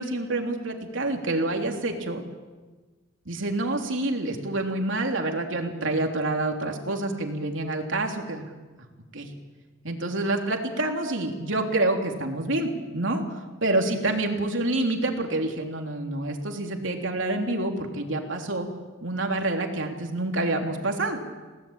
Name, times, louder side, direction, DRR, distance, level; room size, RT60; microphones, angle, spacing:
voice 1, 0.0-2.2 3.2-8.5 9.1-9.3 9.8-18.7 19.0-21.2, right 2 dB, 75° right, 3 dB, 3.4 m, -27 dB
29.0 x 18.5 x 9.0 m, 1.3 s
head